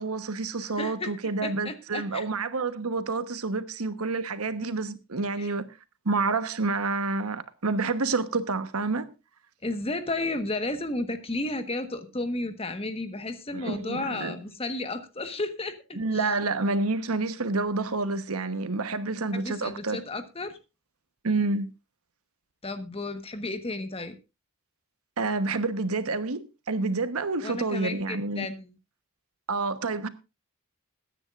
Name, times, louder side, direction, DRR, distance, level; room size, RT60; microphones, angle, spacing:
voice 1, 0.0-5.6 6.0-9.1 13.5-14.3 15.9-20.0 21.2-21.7 25.2-28.5 29.5-30.1, right 3 dB, 85° right, 1.1 m, -28 dB
voice 2, 0.6-1.1 1.4-2.2 5.4-5.5 9.6-16.3 19.3-20.6 22.6-24.2 27.4-28.7, left 2 dB, 25° left, 1.3 m, -33 dB
21.5 x 9.8 x 2.5 m
head